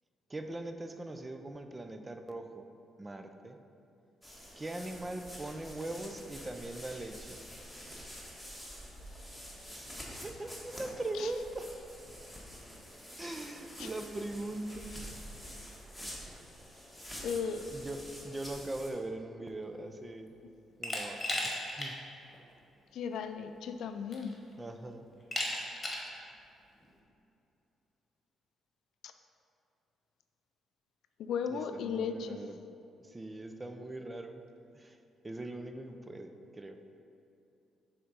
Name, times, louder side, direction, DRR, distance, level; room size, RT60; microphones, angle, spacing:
voice 1, 0.3-2.7 3.0-3.6 4.5-7.4 9.7-9.9 10.2-11.7 12.2-12.3 13.2-14.9 17.7-20.3 20.8-22.0 24.6-25.1 31.5-32.6 33.0-34.4 34.7-35.0 35.2-36.8, right 2 dB, 20° right, 7 dB, 0.4 m, -41 dB
sound 1, 4.2-18.9, equal, ahead, 1.4 m, -47 dB
voice 2, 17.2-17.7 22.9-24.3 29.0-29.1 31.2-32.4, left 6 dB, 75° left, 8 dB, 0.4 m, -36 dB
Glass, 20.8-21.9 22.3-22.4 23.6-23.7 24.1-24.5 25.3-26.1, left 1 dB, 25° left, 1.3 m, -35 dB
6.9 x 3.7 x 5.3 m, 2.8 s
cardioid pair, 90°, 0 cm